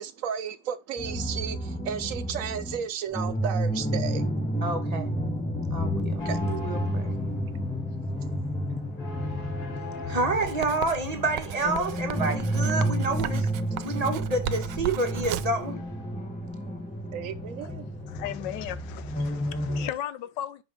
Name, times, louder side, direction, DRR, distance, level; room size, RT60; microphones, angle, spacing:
voice 1, 0.0-4.3 6.2-6.4 17.1-17.8, right 8 dB, 65° right, 0.9 m, -33 dB
sound 1, 1.0-19.9, equal, 10° left, 0.3 m, -31 dB
voice 2, 4.6-5.1 5.7-7.1 10.1-13.4 13.8-15.8 19.8-19.9, right 2 dB, 25° right, 1.2 m, -29 dB
sound 2, 6.2-20.1, left 2 dB, 65° left, 1.9 m, -46 dB
Writing, 10.4-15.6, right 11 dB, 80° right, 1.2 m, -37 dB
voice 3, 18.1-20.6, left 12 dB, 85° left, 1.3 m, -36 dB
5.9 x 5.2 x 5.3 m
omnidirectional pair, 1.9 m